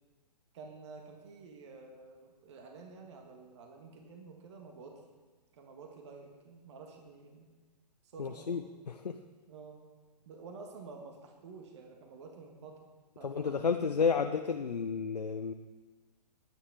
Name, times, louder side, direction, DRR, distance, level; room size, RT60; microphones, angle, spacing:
voice 1, 0.5-5.0 5.5-7.5 8.1-8.6 9.5-9.8 10.2-14.3, right 4 dB, 45° right, 2 dB, 1.5 m, -50 dB
voice 2, 8.2-8.6 9.0-9.2 13.2-15.5, left 5 dB, 70° left, 7 dB, 0.6 m, -31 dB
20.0 x 9.4 x 3.5 m, 1.3 s
figure-of-eight pair, 120°, 21 cm